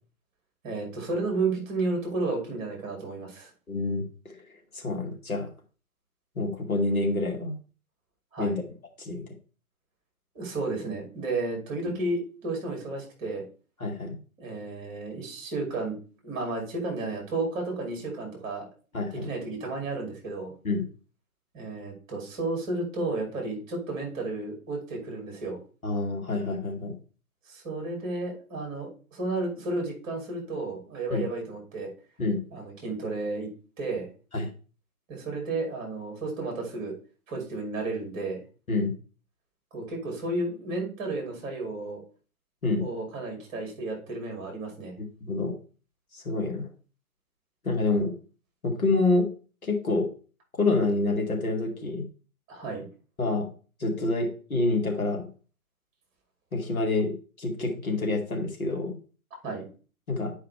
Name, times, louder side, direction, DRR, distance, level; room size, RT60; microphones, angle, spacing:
voice 1, 0.6-3.5 8.3-8.6 10.3-13.4 14.4-15.9 16.2-18.7 19.1-20.5 21.5-25.6 27.5-31.9 32.5-33.5 33.8-34.1 35.1-36.9 37.3-38.4 39.7-42.0 42.8-44.9 52.5-52.9 59.4-59.7, right 2 dB, 20° right, 1 dB, 2.6 m, -32 dB
voice 2, 3.7-4.0 4.7-5.5 6.4-7.6 8.4-8.6 9.0-9.2 11.9-12.0 13.8-14.2 18.9-19.2 20.6-20.8 25.8-27.0 31.1-31.3 32.2-32.4 34.3-34.5 38.7-38.9 42.6-42.9 45.0-45.5 46.1-46.7 47.6-48.1 48.6-49.3 49.6-50.1 50.6-52.0 53.2-53.5 53.8-55.3 56.5-59.0 60.1-60.3, left 2 dB, 70° left, 1 dB, 2.1 m, -27 dB
9.4 x 4.8 x 3.3 m, 0.37 s
figure-of-eight pair, 130°, 44 cm